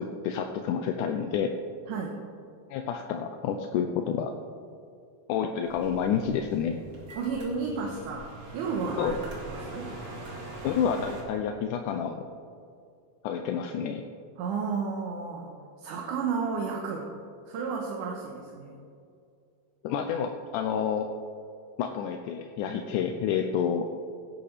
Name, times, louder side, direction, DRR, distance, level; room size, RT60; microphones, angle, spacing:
voice 1, 0.0-1.5 2.7-4.3 5.3-6.8 9.0-9.2 10.6-12.2 13.2-14.0 19.8-21.1 21.8-23.9, left 7 dB, 80° left, 5 dB, 1.9 m, -29 dB
sound 1, 5.7-11.2, right 2 dB, 40° right, 2.4 m, -42 dB
voice 2, 7.2-9.2 9.4-9.9 14.4-17.1 17.5-18.8, right 5 dB, 70° right, 0 dB, 2.4 m, -32 dB
17.0 x 10.5 x 3.3 m, 2.4 s
omnidirectional pair, 4.0 m